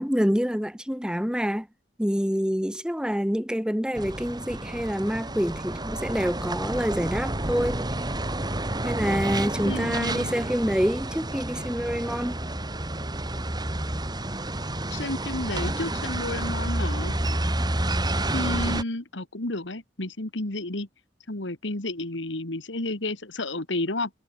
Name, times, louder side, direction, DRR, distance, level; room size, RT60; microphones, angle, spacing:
voice 1, 0.0-1.7 2.0-7.9 8.8-12.4, equal, 5° right, 3.5 m, -27 dB
sound 1, 4.0-18.8, right 1 dB, 25° right, 3.0 m, -29 dB
voice 2, 9.6-10.4 14.9-17.2 18.3-20.9 21.3-24.1, left 2 dB, 85° left, 2.4 m, -31 dB
head